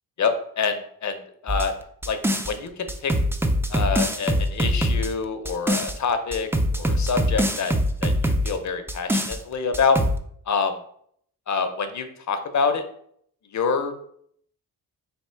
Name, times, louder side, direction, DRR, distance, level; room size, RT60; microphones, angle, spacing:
voice 1, 0.2-1.7 2.1-2.2 2.5-3.1 3.7-7.7 8.0-10.0 10.5-10.8 11.5-12.8 13.5-14.0, left 5 dB, 50° left, 8 dB, 0.6 m, -26 dB
sound 1, 1.5-2.5 2.9-5.9 6.3-8.5 8.9-9.4 9.7-10.2, equal, 5° right, 0.3 m, -23 dB
3.5 x 2.7 x 4.4 m, 0.65 s
cardioid pair, 85°, 38 cm